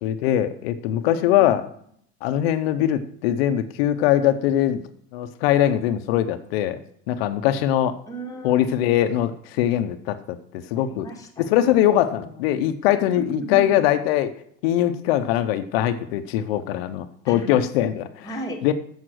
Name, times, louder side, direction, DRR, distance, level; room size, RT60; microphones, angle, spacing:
voice 1, 0.0-1.6 2.2-4.8 5.1-6.8 7.1-8.0 8.4-10.4 10.7-11.1 11.5-14.3 14.6-18.3 18.6-18.7, left 12 dB, 85° left, 9 dB, 0.8 m, -21 dB
voice 2, 1.1-1.5 8.1-8.6 10.8-12.4 13.1-13.9 17.3-17.6 18.2-18.6, right 1 dB, 10° left, -1 dB, 2.0 m, -36 dB
7.3 x 6.3 x 7.7 m, 0.66 s
supercardioid pair, 125°, 30 cm